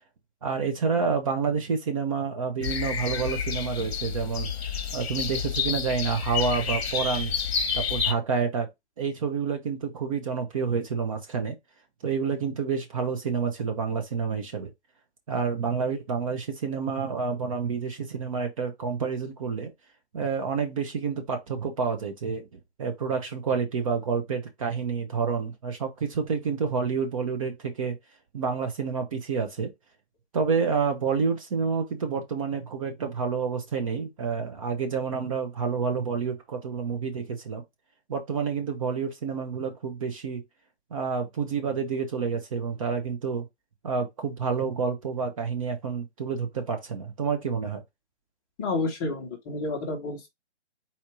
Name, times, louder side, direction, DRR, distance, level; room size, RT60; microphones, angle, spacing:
voice 1, 0.4-4.5 4.9-7.3 7.7-8.7 9.0-11.6 12.0-14.7 15.3-19.7 20.1-28.0 28.3-29.7 30.3-37.6 38.1-40.4 40.9-43.5 43.8-47.8, right 5 dB, 30° right, 0.8 m, -29 dB
sound 1, 2.6-8.1, left 7 dB, 60° left, 1.0 m, -29 dB
voice 2, 48.6-50.3, left 3 dB, 20° left, 0.9 m, -30 dB
4.3 x 2.7 x 4.7 m
hypercardioid pair, 150°, 35 cm